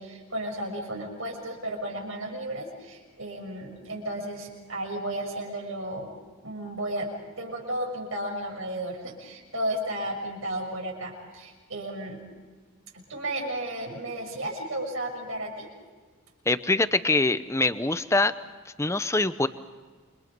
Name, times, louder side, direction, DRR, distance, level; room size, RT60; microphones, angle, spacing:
voice 1, 0.0-6.2 6.4-7.1 7.4-12.2 12.9-15.7, right 1 dB, 75° right, 1 dB, 6.5 m, -33 dB
voice 2, 16.5-18.3 18.8-19.5, left 2 dB, 15° left, 12 dB, 0.7 m, -24 dB
28.5 x 25.0 x 5.3 m, 1.4 s
head